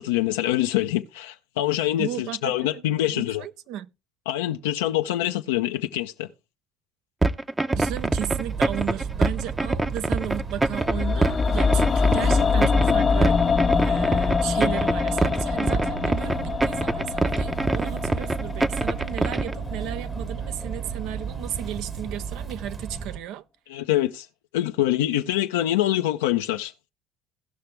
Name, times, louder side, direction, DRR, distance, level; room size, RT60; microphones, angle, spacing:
voice 1, 0.0-3.4 4.3-6.3 23.7-24.3 24.5-26.7, left 13 dB, 85° left, 0.5 m, -25 dB
voice 2, 2.0-3.9 7.7-13.4 13.8-23.4, right 11 dB, 70° right, 0.6 m, -34 dB
sound 1, 7.2-19.5, right 2 dB, 15° right, 0.7 m, -24 dB
sound 2, 7.7-23.2, right 6 dB, 30° right, 1.2 m, -34 dB
sound 3, 10.8-20.9 21.2-21.3, left 5 dB, 35° left, 0.6 m, -25 dB
16.5 x 5.8 x 3.3 m
hypercardioid pair, 75°, 0 cm